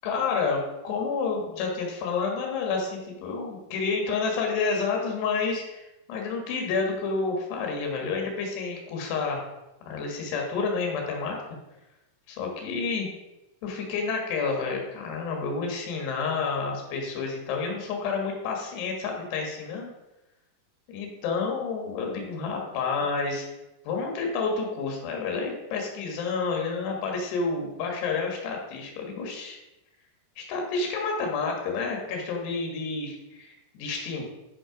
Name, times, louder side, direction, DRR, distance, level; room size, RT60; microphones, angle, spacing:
voice 1, 0.0-5.8 6.1-9.5 9.8-11.4 12.3-13.1 13.6-19.9 20.9-23.5 23.9-29.6 30.4-34.2, left 4 dB, 80° left, 1 dB, 3.7 m, -29 dB
9.7 x 5.6 x 5.1 m, 0.99 s
omnidirectional pair, 4.8 m